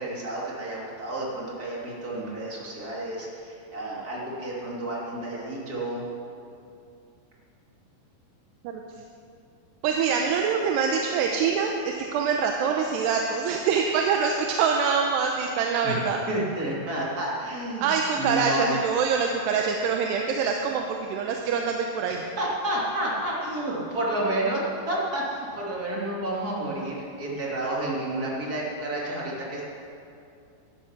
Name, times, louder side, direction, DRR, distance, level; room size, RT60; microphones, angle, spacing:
voice 1, 0.0-6.0 15.8-16.0 16.3-18.8 22.1-29.6, right 1 dB, 25° right, -5 dB, 2.8 m, -30 dB
voice 2, 9.8-16.2 17.8-22.2, right 6 dB, 80° right, 2 dB, 2.9 m, -25 dB
15.5 x 12.0 x 6.0 m, 2.5 s
omnidirectional pair, 4.9 m